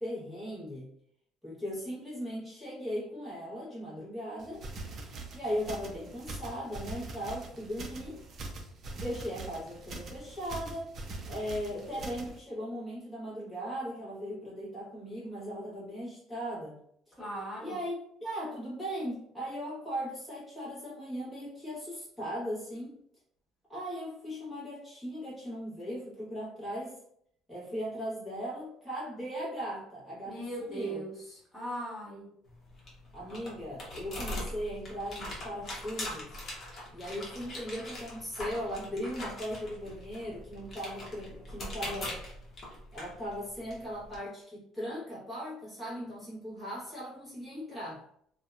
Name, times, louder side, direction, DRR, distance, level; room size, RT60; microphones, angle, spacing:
voice 1, 0.0-0.9 1.4-4.6 5.3-8.2 8.9-10.9 11.3-16.8 17.6-23.0 23.7-27.0 27.5-31.0 33.1-36.4 36.9-42.2 42.9-48.0, equal, ahead, -10 dB, 1.1 m, -38 dB
sound 1, 4.4-12.4, right 2 dB, 45° right, 0.4 m, -43 dB
voice 2, 17.2-17.8 30.2-31.1 31.5-32.3, right 1 dB, 15° left, -8 dB, 1.4 m, -38 dB
sound 2, 32.5-44.2, left 1 dB, 40° left, 0.8 m, -42 dB
2.7 x 2.1 x 2.4 m, 0.68 s
cardioid pair, 130°, 0 cm